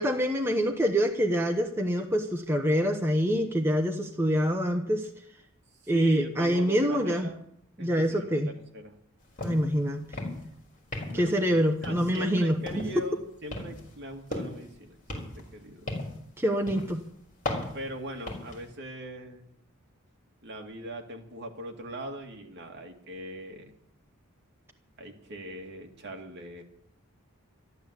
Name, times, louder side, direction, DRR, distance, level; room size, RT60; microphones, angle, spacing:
voice 1, 0.0-5.1 5.9-7.3 7.8-8.5 9.4-10.1 11.1-12.9 16.4-17.0, equal, 10° right, 4 dB, 1.0 m, -26 dB
voice 2, 5.8-7.4 7.8-8.9 11.1-11.6 11.8-15.9 17.7-19.5 20.4-23.7 25.0-26.6, right 1 dB, 50° right, 2 dB, 2.4 m, -41 dB
sound 1, 9.4-9.7 10.0-10.5 10.9-11.4 11.8-12.3 12.7-13.0 13.5-14.7 15.1-16.3 16.7-17.0 17.4-18.6, left 2 dB, 35° left, 4.4 m, -36 dB
13.5 x 12.0 x 8.3 m, 0.72 s
head